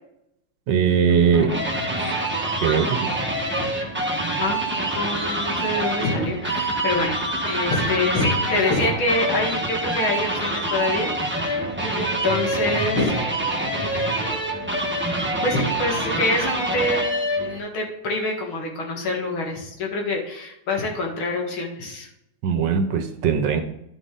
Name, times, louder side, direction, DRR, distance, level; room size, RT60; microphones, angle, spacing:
voice 1, 0.7-1.6 2.0-2.1 2.6-3.1 22.4-23.6, right 6 dB, 65° right, 7 dB, 1.4 m, -20 dB
sound 1, 1.1-17.6, right 1 dB, 10° right, 0.7 m, -26 dB
voice 2, 4.4-7.2 7.5-11.1 11.5-11.6 12.0-13.1 15.4-17.1 17.4-22.1, left 2 dB, 75° left, 1 dB, 2.5 m, -25 dB
10.5 x 6.2 x 3.9 m, 0.81 s
omnidirectional pair, 2.3 m